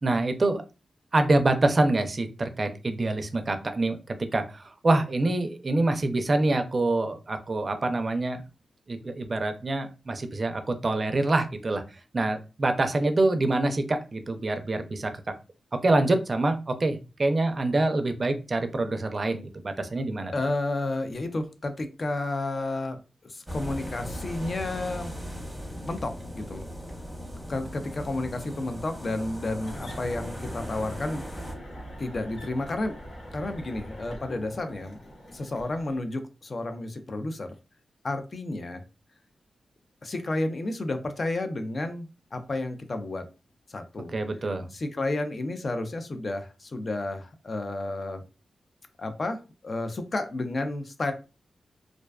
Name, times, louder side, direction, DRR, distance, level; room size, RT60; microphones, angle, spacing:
voice 1, 0.0-0.6 1.1-8.4 8.9-11.8 12.1-15.1 15.8-20.3 44.1-44.7, right 2 dB, 45° right, 7 dB, 0.4 m, -26 dB
voice 2, 20.3-23.0 23.2-25.1 25.8-26.7 27.5-31.3 32.0-32.9 33.3-37.5 38.0-38.8 40.0-43.3 43.7-44.1 44.7-48.2 49.0-51.1, left 2 dB, 50° left, 8 dB, 0.4 m, -31 dB
sound 1, 23.5-31.5, equal, ahead, 0.9 m, -38 dB
sound 2, 29.6-36.0, equal, 75° left, 0.9 m, -42 dB
2.4 x 2.2 x 2.3 m, 0.31 s
cardioid pair, 65°, 0 cm